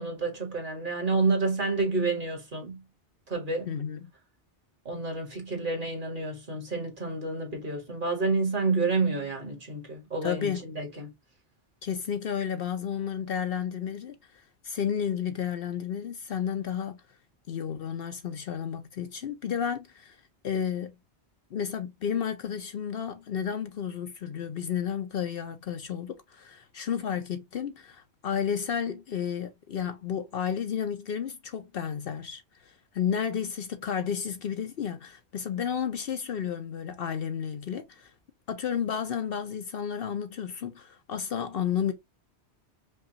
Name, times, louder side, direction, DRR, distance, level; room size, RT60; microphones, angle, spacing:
voice 1, 0.0-2.8 3.3-3.7 4.9-11.1, right 3 dB, 45° right, 1.7 m, -29 dB
voice 2, 3.7-4.0 10.2-10.6 11.8-14.1 14.6-17.0 17.5-20.2 20.4-20.9 21.5-38.1 38.5-41.9, left 8 dB, 60° left, 0.8 m, -32 dB
5.4 x 2.4 x 2.7 m
omnidirectional pair, 1.2 m